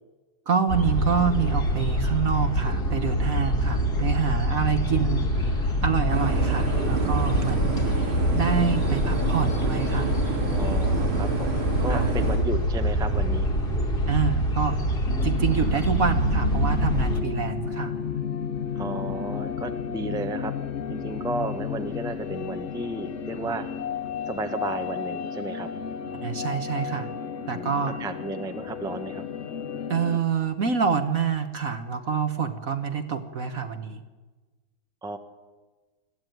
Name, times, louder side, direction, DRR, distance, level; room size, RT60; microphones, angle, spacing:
voice 1, 0.5-10.1 11.9-12.1 14.1-14.8 15.2-17.9 26.1-27.1 27.5-28.0 29.9-34.0, right 6 dB, 45° right, 8 dB, 1.4 m, -27 dB
sound 1, 0.7-17.2, equal, 50° left, 3.0 m, -25 dB
sound 2, 6.1-12.4, right 3 dB, 90° right, 5.1 m, -30 dB
voice 2, 10.5-13.5 15.2-15.3 18.7-20.5 20.9-23.6 24.3-25.7 27.5-29.2 35.0-35.2, right 2 dB, 5° right, 6 dB, 0.9 m, -33 dB
sound 3, 15.0-30.2, left 7 dB, 65° left, 0.7 m, -33 dB
20.5 x 14.5 x 9.3 m, 1.3 s
omnidirectional pair, 2.3 m